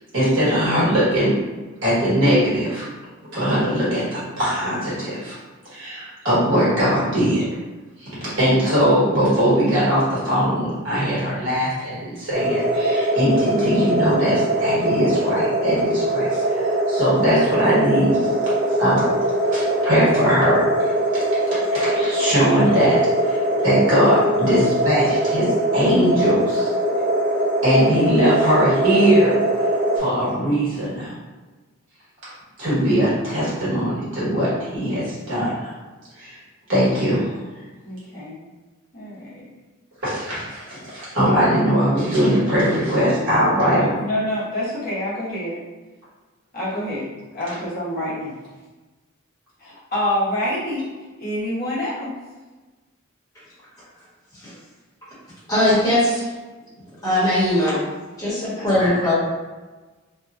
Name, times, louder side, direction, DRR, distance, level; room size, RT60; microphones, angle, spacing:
voice 1, 0.1-1.3 1.8-2.8 3.3-5.3 5.7-7.4 8.0-18.2 18.8-19.1 19.5-20.8 21.1-21.2 21.7-23.0 23.2-25.5 25.7-26.7 27.6-29.7 30.0-31.1 32.6-35.7 36.2-36.4 36.7-37.3 40.0-43.9, equal, 65° right, -9 dB, 1.4 m, -20 dB
sound 1, 12.3-30.0, right 1 dB, 45° right, 0.4 m, -21 dB
voice 2, 37.8-38.4 38.9-39.5 43.6-45.6 46.5-47.1 47.3-48.4 49.6-50.9 51.2-52.1 58.6-58.8, left 1 dB, 45° left, -9 dB, 0.9 m, -27 dB
voice 3, 55.5-56.3 57.0-57.8 58.2-59.1, left 1 dB, 15° left, -11 dB, 1.1 m, -19 dB
2.8 x 2.2 x 2.5 m, 1.2 s
head